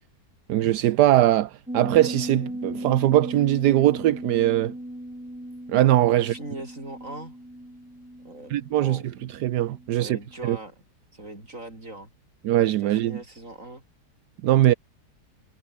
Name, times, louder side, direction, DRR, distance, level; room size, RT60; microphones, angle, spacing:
voice 1, 0.5-4.7 5.7-6.3 8.5-9.0 9.4-10.6 12.4-13.2 14.4-14.7, right 13 dB, 80° right, 1.3 m, -21 dB
sound 1, 1.7-10.0 10.3-10.4, equal, 5° right, 2.3 m, -37 dB
voice 2, 6.2-7.4 8.2-9.1 9.9-10.7 11.1-12.1 12.8-13.8, right 1 dB, 50° right, 7.9 m, -40 dB
omnidirectional pair, 1.8 m